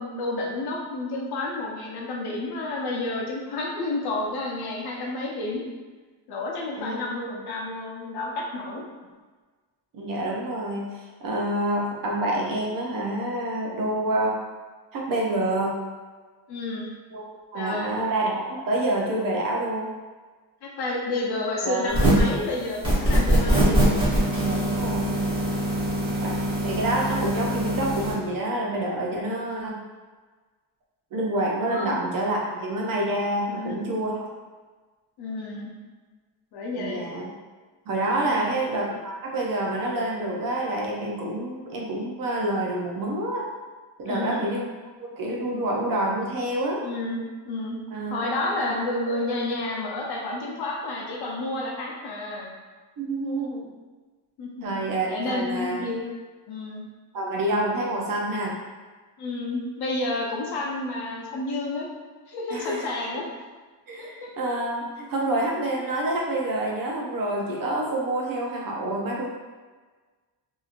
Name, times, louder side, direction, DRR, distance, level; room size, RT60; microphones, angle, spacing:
voice 1, 0.0-5.6 6.3-8.8 16.5-16.9 17.5-18.0 20.6-24.0 29.2-29.3 31.7-32.0 33.5-33.8 35.2-35.7 36.5-37.0 38.2-38.6 44.1-44.5 46.8-47.8 48.1-52.5 54.4-54.8 55.1-56.1 56.5-56.9 59.2-61.9 62.3-63.3 64.0-64.3, left 2 dB, 60° left, -2 dB, 0.7 m, -30 dB
voice 2, 9.9-14.3 14.9-15.8 17.1-17.2 17.5-19.9 21.6-22.0 24.4-25.2 26.2-29.8 31.1-34.2 36.8-37.3 37.9-43.5 44.0-44.7 45.0-46.8 47.9-48.2 53.0-53.7 54.6-55.8 57.1-58.5 62.5-62.8 63.1-63.2 63.9-69.3, right 1 dB, 50° right, -2 dB, 0.6 m, -27 dB
sound 1, 21.9-22.4 22.8-28.1, right 1 dB, 10° right, 1.1 m, -23 dB
2.8 x 2.7 x 2.4 m, 1.4 s
cardioid pair, 155°, 45 cm